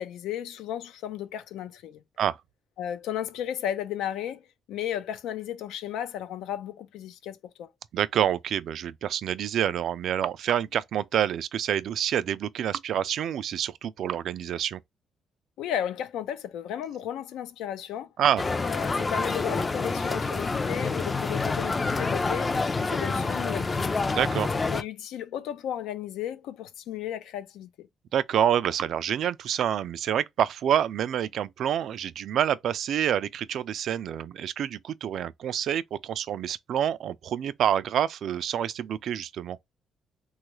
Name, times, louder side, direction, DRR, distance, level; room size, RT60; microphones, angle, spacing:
voice 1, 0.0-2.0 2.8-7.7 15.6-18.1 18.6-22.5 22.8-23.9 24.7-27.9, left 10 dB, 90° left, 0.5 m, -34 dB
voice 2, 7.9-14.8 18.2-18.4 24.1-24.5 28.1-39.6, right 10 dB, 70° right, 0.3 m, -27 dB
sound 1, 18.4-24.8, left 3 dB, 30° left, 0.4 m, -27 dB
3.0 x 2.3 x 3.0 m
cardioid pair, 90°, 0 cm